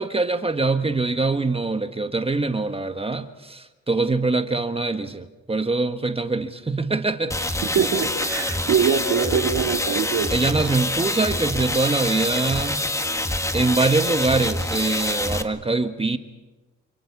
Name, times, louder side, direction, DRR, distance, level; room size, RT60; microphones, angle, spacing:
voice 1, 0.0-7.6 10.3-12.9 13.5-16.2, right 3 dB, 20° right, 8 dB, 1.4 m, -23 dB
sound 1, 7.3-15.4, left 1 dB, 10° left, 1.7 m, -26 dB
voice 2, 7.7-10.3, right 7 dB, 65° right, 2 dB, 3.8 m, -23 dB
28.0 x 25.5 x 6.0 m, 1.2 s
cardioid pair, 90°, 30 cm